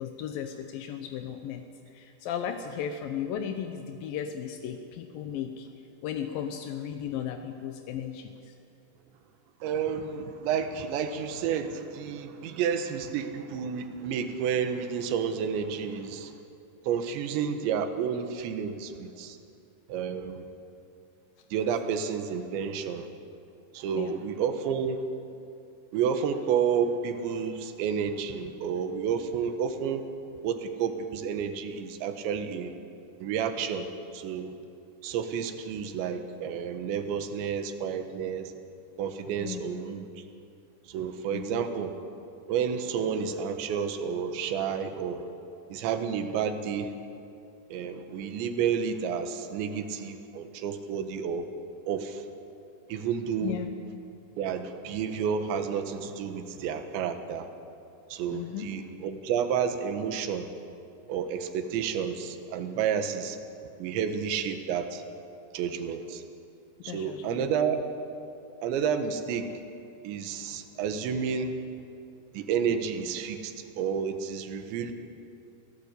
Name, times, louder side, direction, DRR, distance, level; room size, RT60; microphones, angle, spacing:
voice 1, 0.0-1.6 1.9-5.7 6.0-8.5 23.9-24.1 39.4-39.8 41.3-41.6 53.4-53.7 58.3-58.7 66.8-67.5, left 9 dB, 75° left, 6 dB, 2.1 m, -35 dB
voice 2, 9.6-16.4 16.8-19.4 19.9-20.5 21.5-23.1 23.7-25.0 25.9-30.1 30.4-32.7 33.2-34.6 35.0-38.5 39.0-40.3 40.9-42.0 42.5-45.3 45.7-46.9 47.7-51.5 51.9-52.3 52.9-53.6 54.4-57.5 58.1-60.5 61.1-63.4 63.8-65.0 65.5-66.2 66.8-67.9 68.6-69.5 70.0-71.6 72.3-74.9, right 7 dB, 75° right, 7 dB, 3.6 m, -30 dB
27.5 x 17.0 x 8.3 m, 2.7 s
omnidirectional pair, 5.3 m